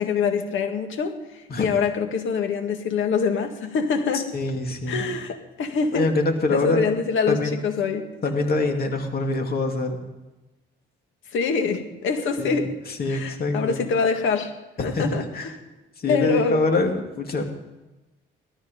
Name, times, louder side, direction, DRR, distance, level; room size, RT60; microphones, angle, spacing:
voice 1, 0.0-4.3 4.9-6.1 6.5-8.1 11.3-12.7 13.1-14.5 14.8-15.6 16.1-16.6, left 5 dB, 80° left, 6 dB, 2.0 m, -25 dB
voice 2, 4.1-5.1 5.9-6.9 7.3-7.6 8.2-10.0 12.4-13.8 14.9-15.5 16.0-17.5, left 2 dB, 50° left, 3 dB, 2.7 m, -25 dB
17.5 x 13.5 x 5.4 m, 1.1 s
cardioid pair, 90°, 20 cm